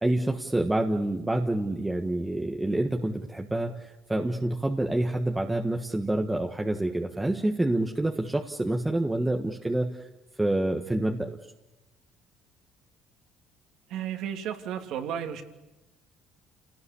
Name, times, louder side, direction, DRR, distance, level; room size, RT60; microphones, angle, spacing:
voice 1, 0.0-10.0 10.4-11.4, right 1 dB, 10° right, 2 dB, 1.5 m, -27 dB
voice 2, 13.9-15.4, right 9 dB, 70° right, 5 dB, 3.0 m, -33 dB
29.0 x 18.5 x 8.5 m, 1.0 s
cardioid pair, 115°, 0 cm